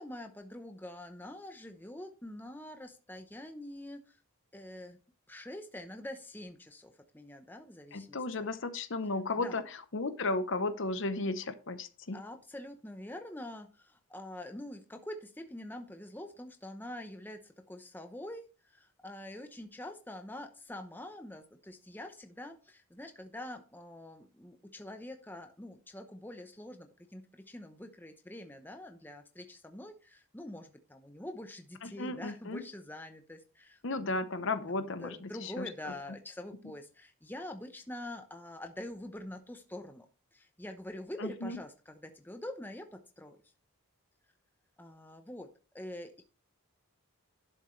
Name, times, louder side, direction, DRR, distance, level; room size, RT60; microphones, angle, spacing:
voice 1, 0.0-4.2 4.5-5.0 5.3-8.5 9.4-9.6 12.1-34.5 34.8-43.4 44.8-45.5 45.7-46.2, left 1 dB, 10° left, 6 dB, 0.8 m, -45 dB
voice 2, 7.9-9.6 9.9-12.2 31.8-32.6 33.8-35.6 41.2-41.6, left 2 dB, 55° left, 11 dB, 0.8 m, -34 dB
11.5 x 7.2 x 3.2 m, 0.34 s
head